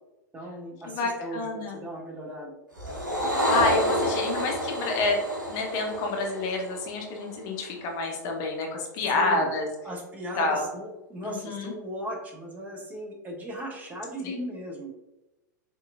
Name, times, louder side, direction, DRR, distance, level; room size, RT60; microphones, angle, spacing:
voice 1, 0.3-2.6 9.1-9.5 9.8-14.9, equal, 15° right, 0 dB, 0.7 m, -37 dB
voice 2, 0.9-1.8 3.5-5.2 5.5-9.7 10.4-10.7 11.2-11.7 14.2-14.4, left 3 dB, 35° left, 1 dB, 0.7 m, -28 dB
sound 1, 2.8-7.4, equal, 80° right, 0.9 m, -29 dB
4.3 x 2.8 x 2.4 m, 1.0 s
figure-of-eight pair, 95°, 10 cm